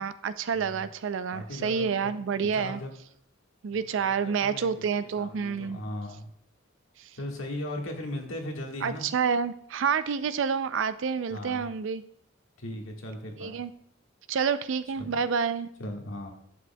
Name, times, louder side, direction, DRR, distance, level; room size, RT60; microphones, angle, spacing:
voice 1, 0.0-2.8 3.6-5.8 8.8-12.0 13.4-13.7 14.3-15.7, right 6 dB, 65° right, 14 dB, 0.4 m, -28 dB
voice 2, 0.5-0.9 1.3-3.0 3.7-6.3 7.2-9.1 11.3-11.7 12.6-13.6 15.0-15.2 15.8-16.3, left 1 dB, 80° left, 1 dB, 1.5 m, -38 dB
11.0 x 7.8 x 2.2 m, 0.67 s
head